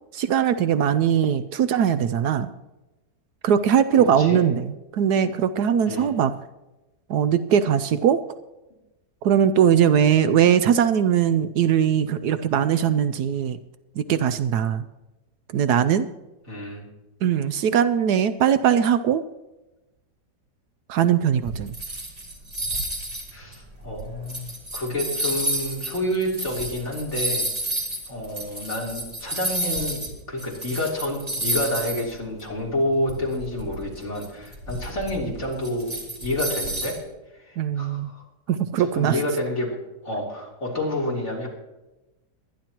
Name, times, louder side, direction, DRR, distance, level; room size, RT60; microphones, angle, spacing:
voice 1, 0.1-2.5 3.4-6.3 7.1-8.2 9.2-13.6 13.9-14.9 15.5-16.1 17.2-19.2 20.9-21.7 37.6-38.1 38.5-39.2, right 9 dB, 75° right, 12 dB, 1.1 m, -20 dB
voice 2, 4.0-4.4 5.9-6.1 16.5-16.9 23.3-27.5 28.1-30.0 30.3-37.0 37.4-38.3 38.8-39.8 40.0-41.5, left 1 dB, 40° left, -3 dB, 3.8 m, -29 dB
sound 1, 21.4-30.1 30.4-32.1 32.4-32.5 33.1-37.0, right 1 dB, 20° right, 2.8 m, -30 dB
23.5 x 10.5 x 3.0 m, 1.0 s
omnidirectional pair, 1.8 m